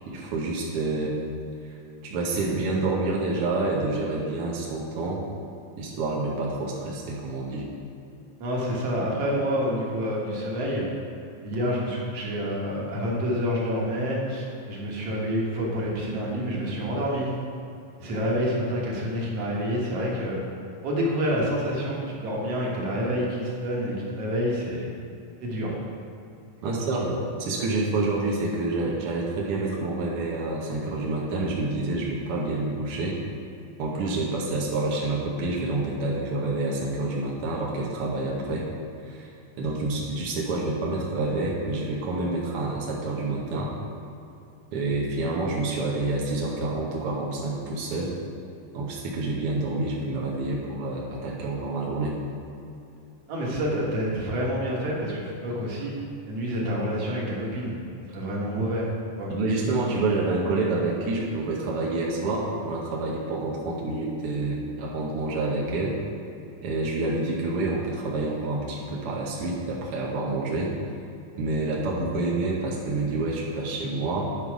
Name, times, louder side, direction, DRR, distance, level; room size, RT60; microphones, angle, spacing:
voice 1, 0.1-1.1 2.0-5.2 5.8-7.6 26.6-33.2 33.8-38.7 39.1-39.3 39.6-43.7 44.7-48.2 48.7-52.2 58.6-58.7 59.3-66.0 66.6-70.7 71.3-74.3, right 2 dB, 75° right, -3 dB, 1.3 m, -28 dB
voice 2, 8.4-10.8 11.4-17.3 18.0-20.4 20.8-24.9 25.4-25.8 26.6-27.0 53.3-55.9 56.3-57.8 58.1-58.9 59.2-59.3, equal, 55° right, -4 dB, 2.2 m, -28 dB
10.5 x 5.4 x 4.8 m, 2.7 s
omnidirectional pair, 4.0 m